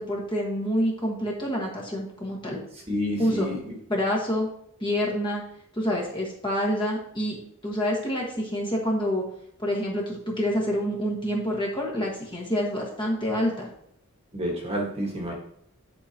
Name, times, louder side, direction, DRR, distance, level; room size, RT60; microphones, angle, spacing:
voice 1, 0.0-2.6 3.2-3.5 3.9-4.5 4.8-5.4 5.7-7.4 7.6-9.2 9.6-13.7, equal, 20° left, -2 dB, 1.4 m, -27 dB
voice 2, 2.9-3.6 14.3-15.3, equal, 25° right, -1 dB, 1.4 m, -29 dB
10.5 x 4.9 x 2.8 m, 0.70 s
head